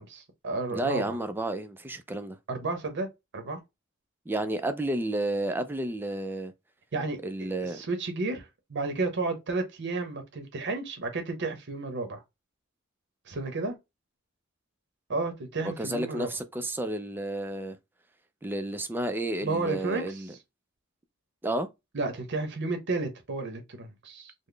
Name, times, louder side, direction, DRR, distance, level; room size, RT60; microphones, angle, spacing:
voice 1, 0.0-1.2 2.5-3.1 3.3-3.6 6.9-12.2 13.3-13.8 15.1-16.3 19.4-20.2 21.9-24.3, right 3 dB, 60° right, 0.7 m, -32 dB
voice 2, 0.7-2.4 4.3-6.5 7.2-7.8 15.6-17.8 18.4-20.3 21.4-21.7, right 1 dB, 10° right, 0.4 m, -31 dB
3.8 x 2.0 x 3.2 m
head